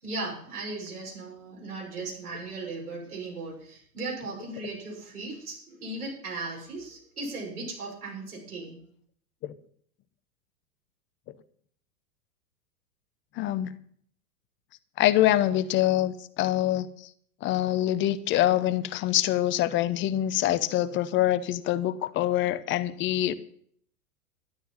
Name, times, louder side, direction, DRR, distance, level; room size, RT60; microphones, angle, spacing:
voice 1, 0.0-8.8, right 3 dB, 75° right, -1 dB, 6.8 m, -37 dB
voice 2, 13.4-13.7 15.0-16.9 17.4-23.3, left 13 dB, 25° left, 14 dB, 0.8 m, -25 dB
12.5 x 12.0 x 5.6 m, 0.62 s
figure-of-eight pair, 95°, 45 cm